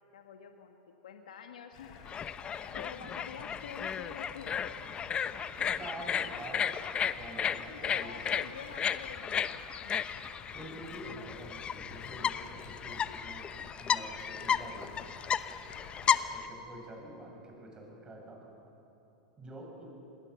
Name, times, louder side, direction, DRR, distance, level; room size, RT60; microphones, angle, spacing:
voice 1, 0.1-2.0 2.7-4.8 5.6-6.2 7.6-10.0 16.0-16.2, left 7 dB, 85° left, 4 dB, 1.4 m, -48 dB
Stream, 1.7-16.2, left 6 dB, 55° left, 4.4 m, -51 dB
sound 1, 2.1-16.5, left 8 dB, 25° left, 0.8 m, -34 dB
voice 2, 5.8-6.7 7.0-8.2 10.5-14.9 16.3-18.5 19.4-19.8, right 1 dB, 20° right, 0 dB, 7.5 m, -47 dB
27.0 x 20.0 x 7.1 m, 2.9 s
hypercardioid pair, 110°, 4 cm